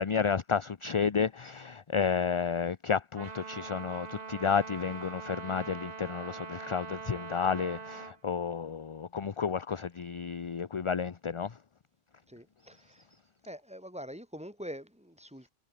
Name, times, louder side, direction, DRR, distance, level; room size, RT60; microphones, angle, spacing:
voice 1, 0.0-11.5, left 6 dB, 35° left, 0.6 m, -31 dB
Trumpet, 3.2-8.2, right 5 dB, 40° right, 1.2 m, -42 dB
voice 2, 12.3-13.1 13.4-15.5, equal, 5° right, 3.4 m, -44 dB
omnidirectional pair, 1.1 m